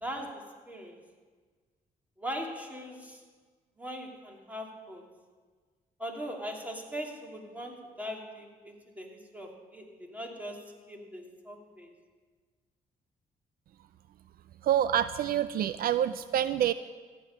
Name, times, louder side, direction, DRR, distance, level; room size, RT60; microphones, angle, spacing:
voice 1, 0.0-1.0 2.2-3.2 3.8-5.0 6.0-11.9, equal, 10° right, 1 dB, 2.6 m, -40 dB
voice 2, 14.6-16.7, right 10 dB, 70° right, 14 dB, 0.4 m, -27 dB
15.0 x 5.4 x 9.7 m, 1.5 s
cardioid pair, 70°, 16 cm